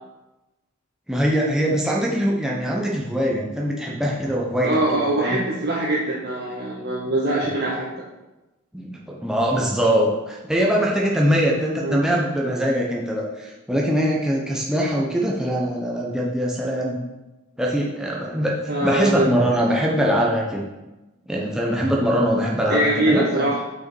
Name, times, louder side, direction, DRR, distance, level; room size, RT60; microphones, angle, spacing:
voice 1, 1.1-5.4 8.7-17.0 17.6-20.7 21.3-23.6, equal, 5° right, -3 dB, 0.8 m, -22 dB
voice 2, 4.6-7.9 11.7-12.0 18.7-19.3 22.7-23.6, right 1 dB, 50° right, -4 dB, 1.0 m, -23 dB
6.3 x 5.9 x 4.4 m, 1.1 s
head